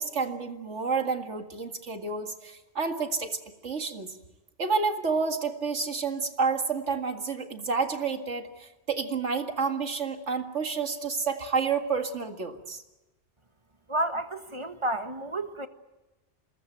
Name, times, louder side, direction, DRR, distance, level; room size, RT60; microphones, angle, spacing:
voice 1, 0.0-4.1 4.6-12.8, right 5 dB, 90° right, 5 dB, 2.3 m, -30 dB
voice 2, 13.9-15.7, right 1 dB, 25° right, 7 dB, 1.5 m, -31 dB
27.0 x 20.5 x 9.2 m, 1.1 s
omnidirectional pair, 1.2 m